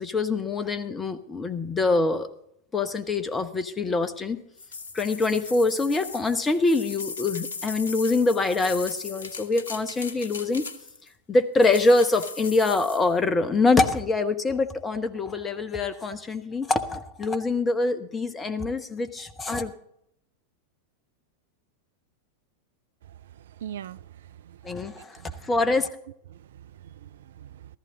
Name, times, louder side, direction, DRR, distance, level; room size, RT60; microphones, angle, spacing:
voice 1, 0.0-2.3 2.7-4.4 4.9-10.7 11.3-19.7 24.6-25.9, left 3 dB, 15° left, 1.0 m, -24 dB
sound 1, 4.6-11.1 11.6-13.1, left 4 dB, 65° left, 1.0 m, -38 dB
voice 2, 23.3-24.6 24.8-25.5 26.3-27.8, right 10 dB, 60° right, 0.4 m, -43 dB
14.5 x 14.0 x 3.8 m
figure-of-eight pair, 90°, 0 cm